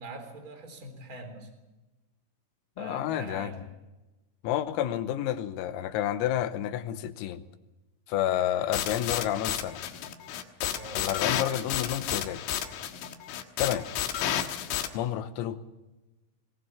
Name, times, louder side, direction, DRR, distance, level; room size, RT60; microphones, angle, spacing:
voice 1, 0.0-1.5 2.8-3.6 10.7-11.0, right 2 dB, 20° right, 5 dB, 3.4 m, -43 dB
voice 2, 2.8-3.5 4.4-7.4 8.1-9.8 10.9-12.4 13.6-13.9 14.9-15.6, left 11 dB, 90° left, 10 dB, 3.8 m, -30 dB
sound 1, 8.7-14.9, left 10 dB, 70° left, 3.6 m, -32 dB
22.5 x 19.0 x 7.1 m, 1.1 s
omnidirectional pair, 6.0 m